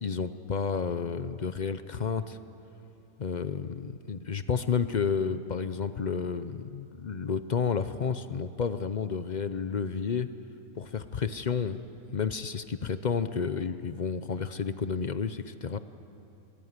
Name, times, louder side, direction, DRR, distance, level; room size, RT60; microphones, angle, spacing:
voice 1, 0.0-2.4 3.2-10.3 10.8-11.8 12.1-15.8, left 6 dB, 55° left, 11 dB, 0.5 m, -31 dB
24.0 x 20.5 x 9.6 m, 2.8 s
omnidirectional pair, 1.7 m